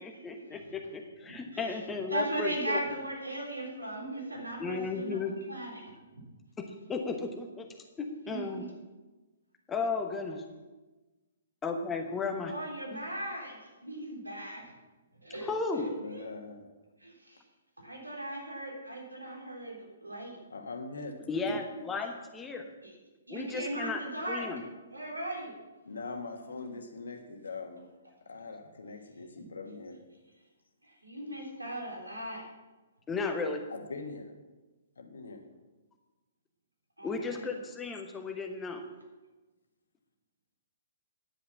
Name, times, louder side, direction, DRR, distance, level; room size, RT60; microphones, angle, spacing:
voice 1, 0.0-2.8 4.6-5.4 6.6-7.7 8.0-8.6 9.7-10.4 11.6-12.5 12.9-13.0 15.4-15.9 21.3-22.7 23.3-24.0 24.3-24.6 33.1-33.6 37.0-38.8, left 4 dB, 15° left, 4 dB, 1.0 m, -34 dB
voice 2, 2.1-5.9 8.0-8.7 12.5-14.6 15.2-16.3 17.0-17.4 17.8-20.4 22.8-22.9 23.3-24.5 24.9-25.6 30.8-32.4 37.0-37.1, right 1 dB, 90° right, -2 dB, 3.7 m, -38 dB
voice 3, 16.0-16.6 20.5-21.1 21.4-21.6 25.8-27.8 28.2-30.0 33.7-34.3 34.9-35.4, left 3 dB, 70° left, 5 dB, 1.5 m, -42 dB
10.0 x 8.5 x 5.8 m, 1.2 s
figure-of-eight pair, 125°, 0 cm